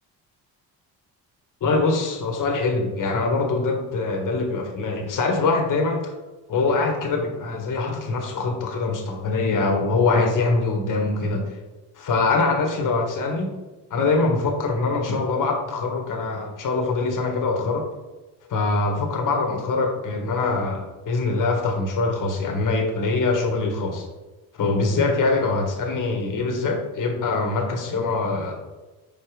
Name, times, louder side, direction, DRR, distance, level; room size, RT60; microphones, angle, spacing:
voice 1, 1.6-6.1 6.5-11.5 11.9-13.5 13.9-17.9 18.5-24.0 24.6-28.6, left 3 dB, 50° left, 2 dB, 1.6 m, -23 dB
5.3 x 5.1 x 4.8 m, 1.2 s
cardioid pair, 90°, 40 cm